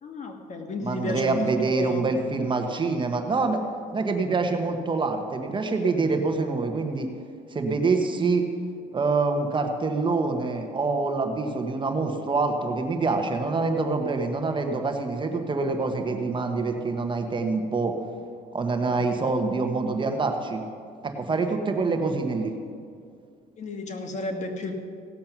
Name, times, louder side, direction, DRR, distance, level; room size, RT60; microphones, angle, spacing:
voice 1, 0.0-2.0 18.8-19.3 21.4-21.5 23.6-24.8, left 2 dB, 45° left, 4 dB, 1.6 m, -33 dB
voice 2, 0.8-3.6 3.9-7.1 7.5-8.5 8.9-18.0 18.5-20.6 21.0-22.5, right 3 dB, 30° right, 5 dB, 1.2 m, -26 dB
17.0 x 7.4 x 6.0 m, 2.3 s
cardioid pair, 110°, 17 cm